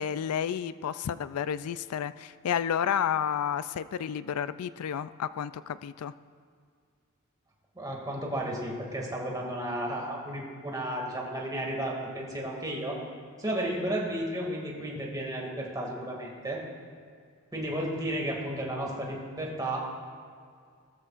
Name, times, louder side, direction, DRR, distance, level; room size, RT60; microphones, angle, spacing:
voice 1, 0.0-6.1, left 8 dB, 80° left, 15 dB, 0.4 m, -31 dB
voice 2, 7.7-13.0 13.4-16.6 17.5-19.8, right 1 dB, 15° right, -2 dB, 2.3 m, -33 dB
19.5 x 13.5 x 2.5 m, 2.1 s
head